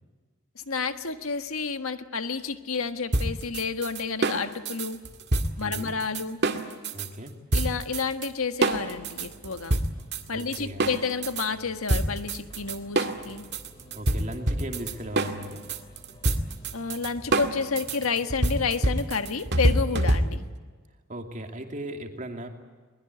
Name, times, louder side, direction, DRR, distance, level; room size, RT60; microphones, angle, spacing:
voice 1, 0.5-5.0 5.6-6.4 7.5-9.8 10.3-13.4 16.7-20.5, left 5 dB, 80° left, 8 dB, 1.6 m, -30 dB
sound 1, 3.1-7.1 7.5-8.3 8.6-11.5 11.9-20.6, right 1 dB, 50° right, 2.0 m, -26 dB
voice 2, 5.6-5.9 6.9-7.4 10.3-10.8 13.9-15.7 21.1-22.5, right 1 dB, 35° right, 4 dB, 2.7 m, -37 dB
sound 2, 8.7-18.5, left 1 dB, 20° left, 3.4 m, -49 dB
22.5 x 21.0 x 9.7 m, 1.4 s
head